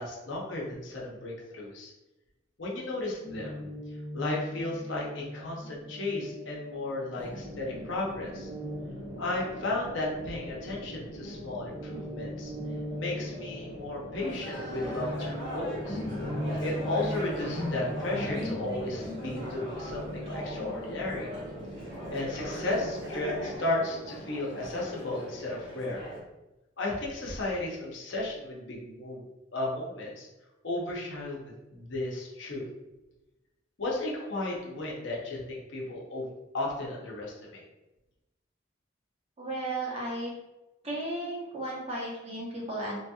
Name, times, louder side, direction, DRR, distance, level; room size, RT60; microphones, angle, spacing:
voice 1, 0.0-1.9 2.6-3.7 4.1-8.5 9.2-12.5 13.0-16.0 16.6-21.3 22.1-26.1 26.8-29.3 29.5-30.3 30.6-32.7 33.8-36.3 36.5-37.6, left 2 dB, 65° left, -3 dB, 0.7 m, -34 dB
Guitar, 3.2-10.9 11.2-21.7, left 1 dB, 10° left, 0.7 m, -40 dB
sound 1, 7.2-23.6, right 1 dB, 75° right, 0.8 m, -43 dB
sound 2, 14.2-26.2, equal, 55° right, 1.1 m, -40 dB
voice 2, 39.4-40.3 40.8-43.0, right 1 dB, 30° right, -5 dB, 0.8 m, -34 dB
3.0 x 2.8 x 2.3 m, 1.0 s
head